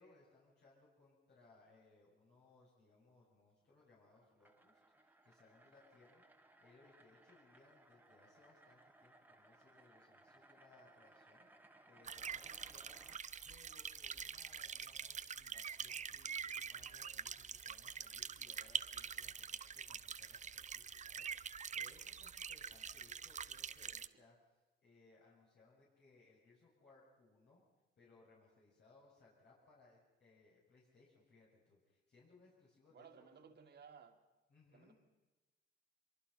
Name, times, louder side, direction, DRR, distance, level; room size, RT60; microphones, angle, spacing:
voice 1, 0.0-6.2 6.6-27.6 28.0-33.3 34.5-34.9, left 3 dB, 60° left, -5 dB, 6.6 m, -67 dB
sound 1, 3.7-13.2, right 2 dB, 10° right, 1.7 m, -65 dB
sound 2, 12.0-24.1, right 7 dB, 35° right, 0.6 m, -45 dB
voice 2, 32.9-34.2 34.7-34.9, right 6 dB, 55° right, 6 dB, 2.2 m, -59 dB
24.5 x 23.5 x 5.6 m, 1.1 s
cardioid pair, 110°, 20 cm